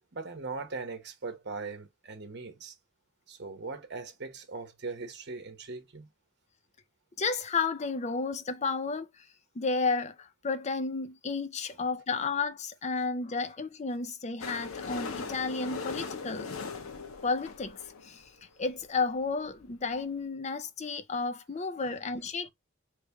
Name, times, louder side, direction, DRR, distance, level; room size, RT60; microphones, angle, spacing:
voice 1, 0.1-2.7 3.3-6.1 21.8-21.9, right 3 dB, 55° right, 1.0 m, -40 dB
voice 2, 7.2-9.3 9.6-16.5 17.2-18.2 18.6-22.5, left 4 dB, 35° left, 0.5 m, -32 dB
sound 1, 14.4-18.3 19.0-19.1 19.2-19.3 19.5-19.6 20.0-20.1, left 5 dB, 90° left, 0.8 m, -39 dB
3.3 x 3.2 x 3.4 m
head